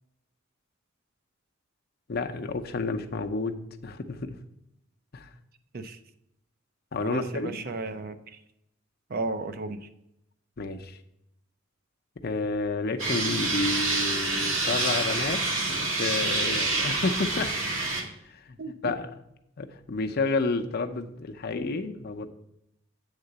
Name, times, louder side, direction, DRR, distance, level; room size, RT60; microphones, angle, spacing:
voice 1, 2.1-3.6 3.8-4.4 5.1-5.3 6.9-7.6 10.6-11.0 12.2-17.5 18.2-19.1 19.6-22.3, left 3 dB, 50° left, 6 dB, 0.6 m, -30 dB
voice 2, 7.0-8.4 9.1-9.8 18.6-18.9, right 3 dB, 50° right, 9 dB, 0.6 m, -34 dB
sound 1, 13.0-18.0, right 2 dB, 90° right, 1.9 m, -27 dB
8.1 x 3.8 x 6.6 m, 0.80 s
head